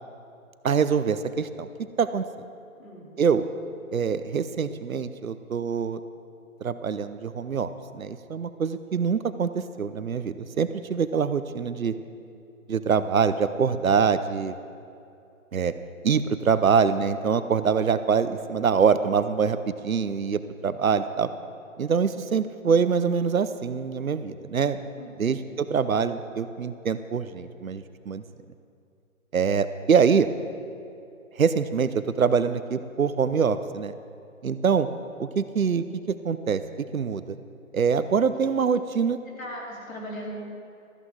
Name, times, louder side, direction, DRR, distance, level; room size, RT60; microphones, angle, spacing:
voice 1, 0.6-1.7 2.0-2.2 3.2-3.5 3.9-6.0 6.6-7.7 8.0-11.9 12.7-14.5 15.5-15.7 16.0-21.3 21.8-24.8 25.2-28.2 29.3-30.3 31.4-33.9 34.4-34.9 35.2-35.8 36.2-36.6 36.9-37.4 37.7-39.2, right 6 dB, 75° right, 12 dB, 0.8 m, -24 dB
voice 2, 25.0-25.4 39.4-40.3, left 1 dB, 70° left, -3 dB, 3.7 m, -39 dB
14.5 x 13.5 x 3.8 m, 2.6 s
figure-of-eight pair, 145°, 42 cm